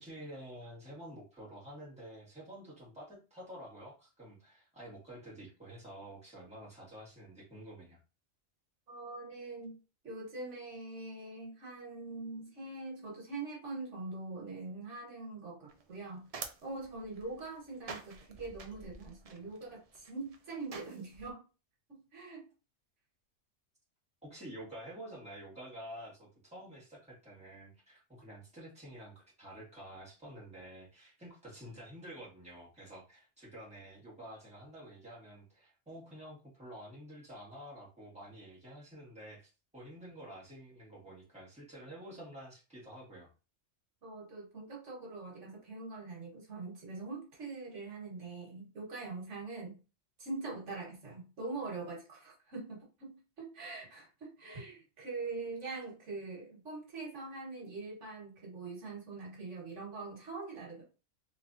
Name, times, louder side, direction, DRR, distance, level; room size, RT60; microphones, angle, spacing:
voice 1, 0.0-8.0 24.2-43.3, right 1 dB, 5° right, -7 dB, 1.7 m, -49 dB
voice 2, 8.9-9.8 10.0-21.4 21.9-22.5 44.0-49.8 50.2-60.8, right 3 dB, 90° right, -2 dB, 1.7 m, -43 dB
sound 1, 15.7-21.3, right 4 dB, 50° right, 0.4 m, -49 dB
3.3 x 3.2 x 2.6 m, 0.32 s
omnidirectional pair, 1.2 m